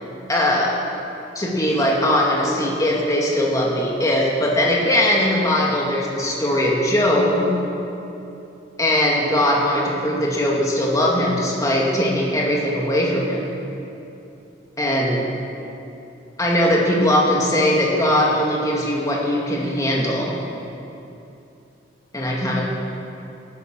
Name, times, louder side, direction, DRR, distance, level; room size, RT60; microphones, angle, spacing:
voice 1, 0.3-0.8 1.3-7.5 8.8-13.5 14.8-15.3 16.4-20.4 22.1-22.6, left 1 dB, 20° left, -3 dB, 2.2 m, -20 dB
16.5 x 9.0 x 6.1 m, 2.8 s
head